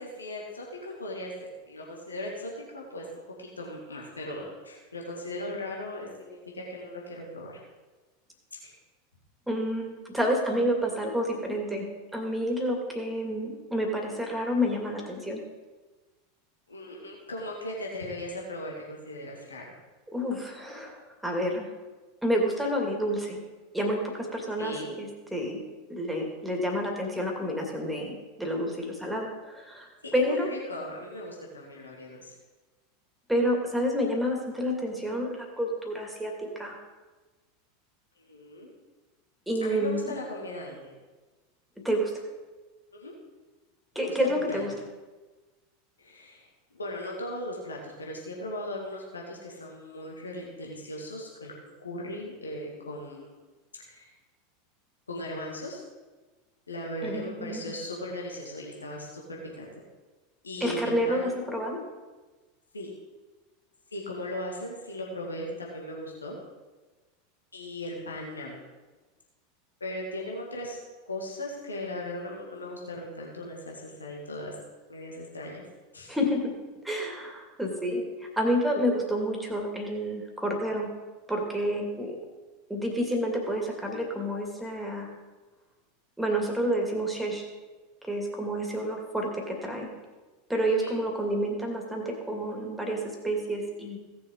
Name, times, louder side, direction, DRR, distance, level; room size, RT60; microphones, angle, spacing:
voice 1, 0.0-7.6 8.6-8.7 16.7-19.7 24.6-24.9 30.0-32.4 38.2-38.7 39.6-40.9 42.9-43.1 43.9-44.7 46.0-53.4 53.8-54.1 55.1-55.8 56.7-59.7 60.4-61.3 62.7-62.9 63.9-66.4 67.5-68.6 69.8-70.8 71.1-74.5 74.9-75.6 75.9-76.2 90.6-91.0, left 1 dB, 80° left, -2 dB, 2.1 m, -38 dB
voice 2, 9.5-11.9 12.1-15.4 20.1-21.7 22.2-23.4 23.7-25.6 25.9-30.5 33.3-36.8 39.5-40.0 41.8-42.1 43.9-44.7 57.0-57.7 60.6-61.8 76.1-76.5 76.8-80.9 81.3-82.2 82.7-85.1 86.2-87.5 88.0-89.9 90.5-94.0, equal, 5° right, 1 dB, 2.4 m, -29 dB
17.0 x 6.8 x 3.9 m, 1.2 s
figure-of-eight pair, 85°, 0 cm